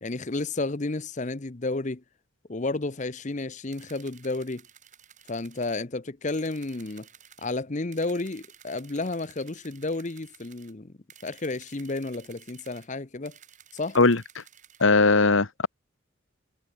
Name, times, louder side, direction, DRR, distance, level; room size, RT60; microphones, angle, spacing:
voice 1, 0.0-2.0 2.5-4.6 5.3-7.1 7.4-10.9 11.2-13.4 13.7-14.0, left 2 dB, 35° left, 0.8 m, -31 dB
sound 1, 3.7-5.8 6.3-7.5 7.9-10.7 11.1-12.9 13.3-14.9, right 9 dB, 35° right, 7.6 m, -54 dB
voice 2, 14.8-15.7, left 3 dB, 70° left, 1.4 m, -19 dB
head